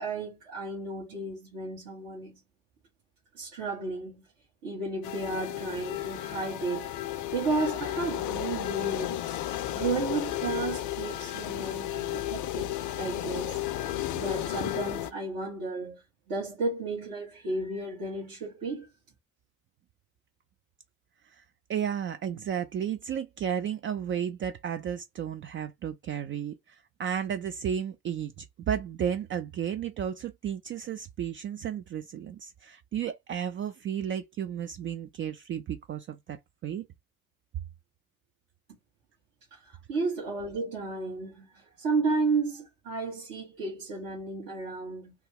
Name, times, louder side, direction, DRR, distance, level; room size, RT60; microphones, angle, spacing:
voice 1, 0.0-2.4 3.3-4.3 4.6-9.2 9.7-13.6 14.1-16.0 16.3-18.9 39.5-45.1, right 3 dB, 55° right, 1.4 m, -33 dB
sound 1, 5.0-15.1, left 13 dB, 50° left, 0.5 m, -33 dB
voice 2, 21.7-36.9, right 9 dB, 30° right, 0.4 m, -33 dB
2.8 x 2.2 x 3.4 m
figure-of-eight pair, 45°, 41 cm